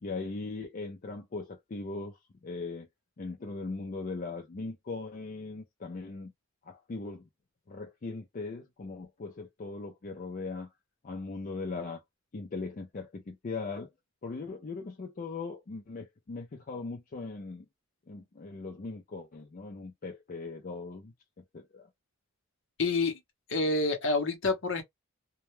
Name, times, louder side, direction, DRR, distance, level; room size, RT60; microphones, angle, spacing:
voice 1, 0.0-2.9 3.2-6.3 6.6-7.3 7.7-10.7 11.0-12.0 12.3-13.9 14.2-17.7 18.1-21.9, left 3 dB, 40° left, 0.4 m, -39 dB
voice 2, 22.8-23.1 23.5-24.8, left 3 dB, 55° left, 0.8 m, -27 dB
2.2 x 2.1 x 3.0 m
head